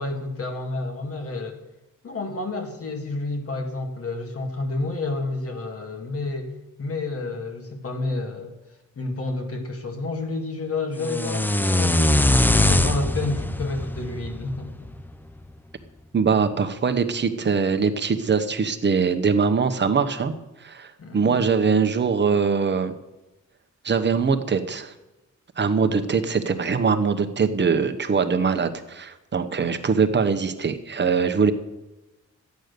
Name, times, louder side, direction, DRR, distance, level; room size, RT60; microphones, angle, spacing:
voice 1, 0.0-1.6 2.0-6.5 6.8-8.5 9.0-12.1 12.5-14.9 21.0-21.4, left 2 dB, 45° left, 4 dB, 2.1 m, -30 dB
sound 1, 11.0-15.1, left 1 dB, 5° left, 0.4 m, -22 dB
voice 2, 16.1-20.3 20.6-22.9 23.8-24.9 25.6-31.5, right 5 dB, 35° right, 7 dB, 1.0 m, -22 dB
13.0 x 9.3 x 6.7 m, 1.0 s
wide cardioid pair, 145°, 31 cm